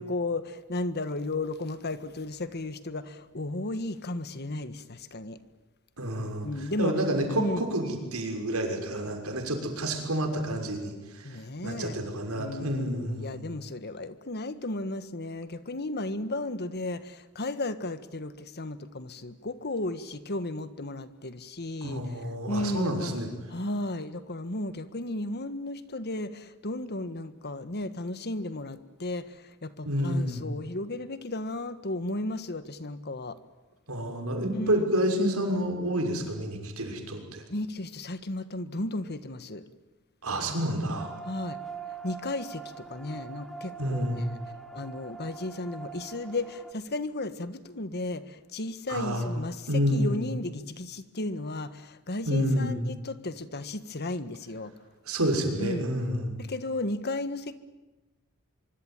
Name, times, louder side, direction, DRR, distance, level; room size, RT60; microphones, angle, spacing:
voice 1, 0.0-5.4 6.4-6.9 7.4-7.6 11.2-12.0 12.3-22.0 22.5-23.2 23.5-33.4 34.5-34.8 37.5-39.6 40.4-40.6 41.2-41.6 42.0-44.2 44.7-54.7 55.6-55.9 56.4-57.6, left 2 dB, 50° left, 12 dB, 1.6 m, -34 dB
voice 2, 6.0-13.5 21.8-23.3 29.8-30.4 33.9-37.4 40.2-41.1 43.8-44.2 48.9-49.3 49.7-50.2 52.2-52.8 55.1-56.3, equal, 80° right, 4 dB, 6.3 m, -29 dB
sound 1, 40.9-46.7, right 5 dB, ahead, 1.6 m, -43 dB
24.5 x 24.5 x 9.2 m, 1.1 s
head